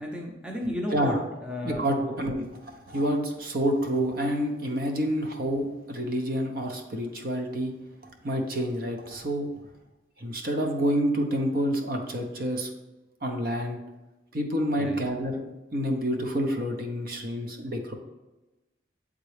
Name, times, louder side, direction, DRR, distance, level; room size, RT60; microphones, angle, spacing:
voice 1, 0.0-2.2 7.0-7.2 14.8-15.0, left 1 dB, 5° right, -1 dB, 0.6 m, -34 dB
voice 2, 1.6-7.7 8.2-9.5 10.2-12.7 13.2-13.8 14.3-15.4 15.7-17.9, equal, 50° right, 3 dB, 0.7 m, -28 dB
8.0 x 3.6 x 3.3 m, 1.1 s
head